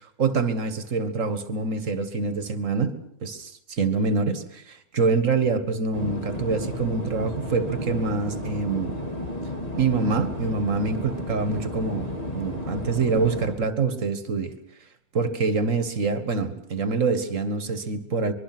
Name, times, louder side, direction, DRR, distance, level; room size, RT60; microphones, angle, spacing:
voice 1, 0.0-9.0 9.8-14.6 15.1-18.3, right 4 dB, 70° right, 11 dB, 2.1 m, -25 dB
sound 1, 5.9-13.5, left 1 dB, 30° left, 3.5 m, -33 dB
24.5 x 22.5 x 6.1 m, 0.68 s
omnidirectional pair, 1.4 m